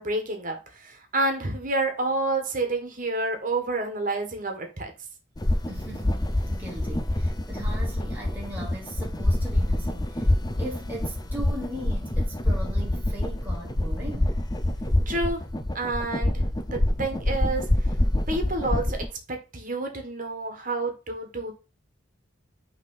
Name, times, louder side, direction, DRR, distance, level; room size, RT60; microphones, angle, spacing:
voice 1, 0.0-4.9 15.0-15.4 15.7-17.6 18.3-19.0 19.3-21.5, right 2 dB, 40° right, 1.7 m, -29 dB
sound 1, 5.4-19.1, left 1 dB, 20° left, 0.6 m, -26 dB
voice 2, 5.7-10.3 10.6-14.4, right 1 dB, 10° right, 1.1 m, -39 dB
6.3 x 3.6 x 5.7 m
head